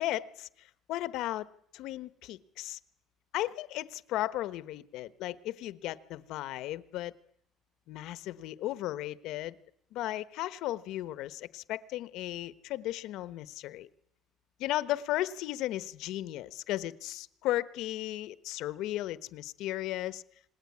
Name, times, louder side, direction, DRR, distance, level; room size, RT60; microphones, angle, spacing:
voice 1, 0.0-2.8 3.3-7.1 7.9-9.6 9.9-13.9 14.6-20.2, left 15 dB, 60° left, 1.1 m, -35 dB
27.0 x 19.5 x 9.6 m
cardioid pair, 175°, 0 cm